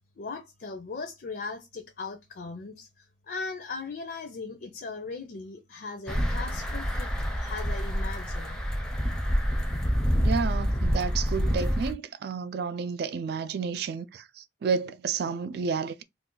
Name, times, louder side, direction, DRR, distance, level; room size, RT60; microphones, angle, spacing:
voice 1, 0.2-8.6, left 4 dB, 55° left, 0.5 m, -38 dB
sound 1, 6.1-11.9, equal, 5° left, 0.5 m, -27 dB
voice 2, 10.2-16.0, right 5 dB, 60° right, 0.3 m, -31 dB
2.5 x 2.3 x 3.7 m
head